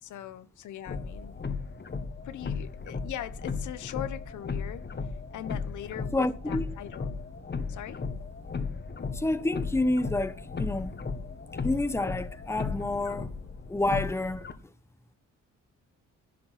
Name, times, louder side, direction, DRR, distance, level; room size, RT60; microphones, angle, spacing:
voice 1, 0.0-1.4 2.2-7.2 7.7-8.0, left 11 dB, 75° left, 1.1 m, -41 dB
sound 1, 0.9-14.5, left 4 dB, 35° left, 1.7 m, -36 dB
voice 2, 6.1-6.7 9.1-10.9 11.6-13.3 13.7-14.5, left 2 dB, 10° left, 1.0 m, -28 dB
11.5 x 8.6 x 5.9 m
cardioid pair, 90°, 30 cm